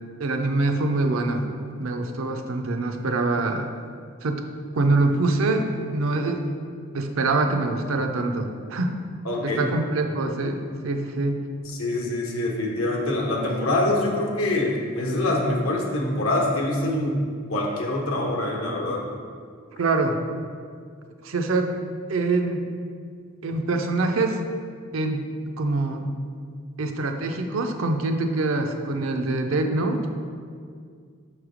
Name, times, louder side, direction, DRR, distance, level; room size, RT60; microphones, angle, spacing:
voice 1, 0.2-1.5 1.8-3.7 4.2-4.5 4.7-6.5 6.9-9.0 9.4-11.5 19.8-20.2 21.2-21.8 22.1-22.7 23.4-24.4 24.9-26.1 26.8-30.1, right 2 dB, 70° right, 5 dB, 0.5 m, -24 dB
voice 2, 9.2-9.7 11.6-19.1, left 1 dB, 80° left, -1 dB, 1.0 m, -25 dB
6.1 x 3.2 x 4.9 m, 2.1 s
head